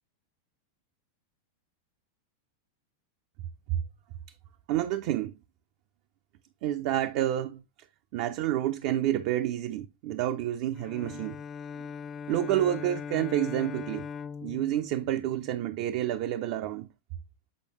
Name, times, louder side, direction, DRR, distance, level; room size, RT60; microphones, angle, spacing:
voice 1, 4.7-5.3 6.6-7.6 8.1-11.4 12.3-14.1 14.4-16.9, right 12 dB, 45° right, 0.5 m, -29 dB
Bowed string instrument, 10.8-16.0, left 6 dB, 25° left, 0.4 m, -40 dB
8.6 x 4.8 x 3.1 m
figure-of-eight pair, 90°, 0 cm